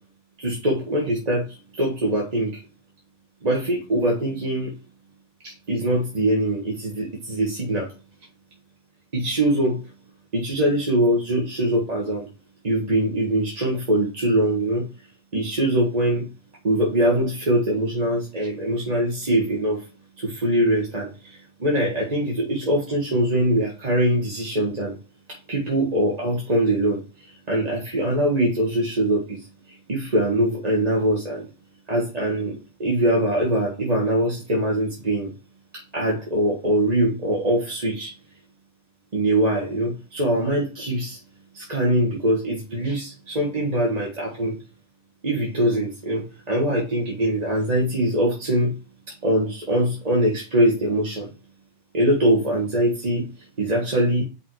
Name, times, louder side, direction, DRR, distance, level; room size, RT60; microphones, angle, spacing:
voice 1, 0.4-2.6 3.4-4.7 5.4-7.9 9.1-9.9 10.3-12.3 12.6-14.9 15.3-16.3 16.6-19.9 20.2-25.0 25.3-31.5 31.9-35.3 35.7-38.1 39.1-41.2 41.5-44.6 45.2-48.7 49.1-51.3 51.9-54.2, right 1 dB, 40° right, -2 dB, 1.5 m, -23 dB
5.4 x 4.2 x 4.7 m, 0.30 s
omnidirectional pair, 1.1 m